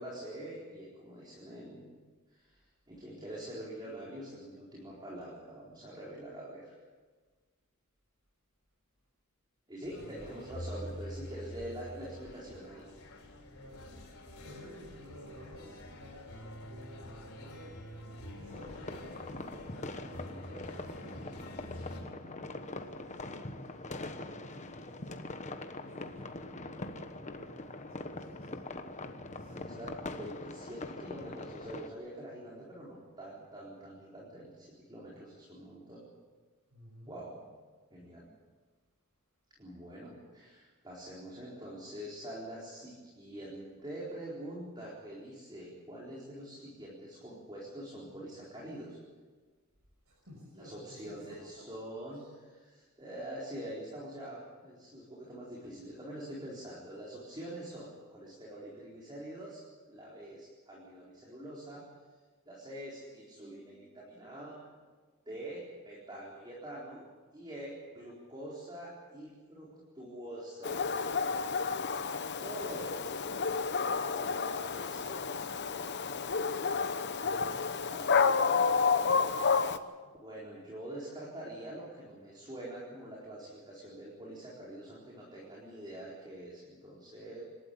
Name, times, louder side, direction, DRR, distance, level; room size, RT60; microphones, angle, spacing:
voice 1, 0.0-2.0 2.3-2.6 2.9-6.7 9.7-12.9 29.4-36.0 37.1-37.5 37.9-38.3 39.6-49.0 50.6-52.2 52.7-59.6 59.9-61.8 62.5-64.7 65.3-71.0 72.4-73.1 73.6-76.2 77.4-78.7 80.0-87.4, right 1 dB, 20° right, -5 dB, 4.2 m, -45 dB
sound 1, 9.8-22.0, left 1 dB, 85° left, 5.0 m, -47 dB
voice 2, 14.4-17.7 18.3-25.2 25.7-28.6 29.2-30.1 36.7-37.1 50.0-51.7 52.1-52.3 77.1-77.7, equal, 85° right, -2 dB, 6.0 m, -53 dB
sound 2, 18.5-31.9, left 2 dB, 35° left, 1.2 m, -43 dB
Dog, 70.6-79.8, left 5 dB, 55° left, 0.9 m, -30 dB
27.0 x 12.5 x 8.5 m, 1.4 s
head